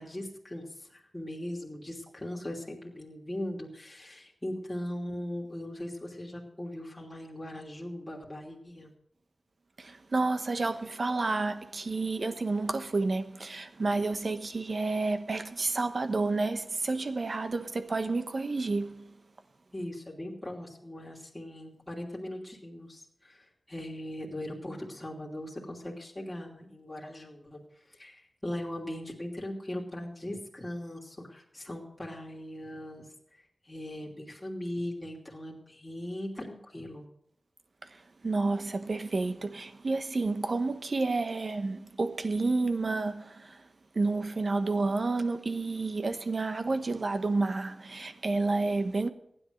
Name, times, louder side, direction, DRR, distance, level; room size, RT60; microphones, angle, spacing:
voice 1, 0.0-8.9 19.7-27.6 27.9-37.0, left 1 dB, 15° left, 2.9 m, -39 dB
voice 2, 9.8-19.1 37.8-43.6 43.9-49.1, right 3 dB, 55° right, 1.1 m, -30 dB
15.5 x 10.0 x 6.5 m
wide cardioid pair, 90°, 0 cm